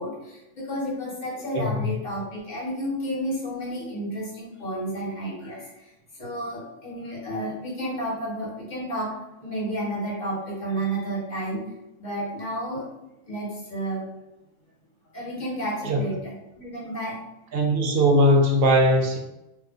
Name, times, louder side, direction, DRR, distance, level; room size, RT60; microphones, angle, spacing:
voice 1, 0.0-5.9 6.2-11.6 12.0-12.9 13.3-14.1 15.1-17.2, right 1 dB, 35° left, -5 dB, 1.2 m, -31 dB
voice 2, 17.5-19.2, equal, 60° right, 2 dB, 0.7 m, -19 dB
2.6 x 2.5 x 3.6 m, 0.91 s
omnidirectional pair, 1.3 m